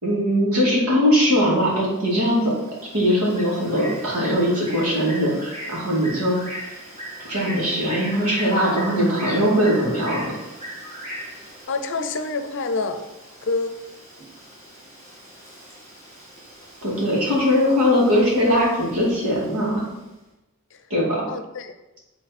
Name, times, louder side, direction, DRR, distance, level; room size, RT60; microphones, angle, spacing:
voice 1, 0.0-2.5 2.9-6.4 7.3-10.3 16.8-19.8 20.9-21.3, equal, 75° right, -5 dB, 2.5 m, -20 dB
Bird, 1.3-20.0, equal, 30° right, 2.1 m, -40 dB
voice 2, 11.7-13.0 13.4-13.7 20.7-20.8 21.3-21.7, left 3 dB, 55° left, 8 dB, 0.6 m, -27 dB
8.3 x 3.9 x 4.3 m, 1.0 s
head